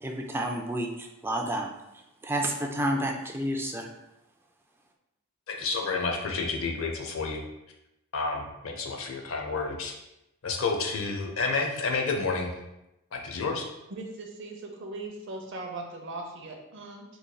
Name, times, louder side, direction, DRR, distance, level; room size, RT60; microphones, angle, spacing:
voice 1, 0.0-1.7 2.2-3.9, right 1 dB, 10° right, 3 dB, 0.3 m, -30 dB
voice 2, 5.5-7.4 8.1-9.9 10.4-12.5 13.1-13.7, left 4 dB, 75° left, 2 dB, 0.6 m, -30 dB
voice 3, 13.9-17.0, right 2 dB, 60° right, 2 dB, 0.6 m, -39 dB
4.0 x 3.1 x 2.2 m, 0.90 s
head